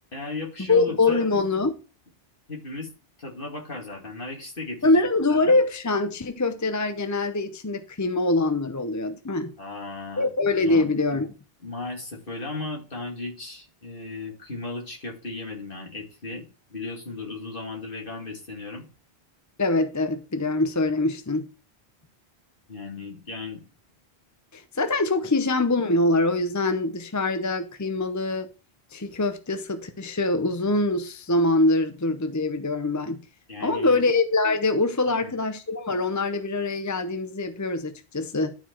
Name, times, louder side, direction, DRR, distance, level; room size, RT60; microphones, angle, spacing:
voice 1, 0.1-1.3 2.5-2.9 3.2-5.0 5.3-5.6 9.6-10.3 10.6-10.9 11.6-16.4 16.7-18.9 22.7-23.6 33.5-34.0 35.1-35.3, left 3 dB, 55° left, 2.6 m, -36 dB
voice 2, 0.7-1.8 4.8-9.5 10.2-11.3 19.6-21.5 24.5-28.5 28.9-33.2 33.6-38.6, left 2 dB, 20° left, 0.6 m, -24 dB
11.5 x 4.6 x 4.5 m
omnidirectional pair, 1.1 m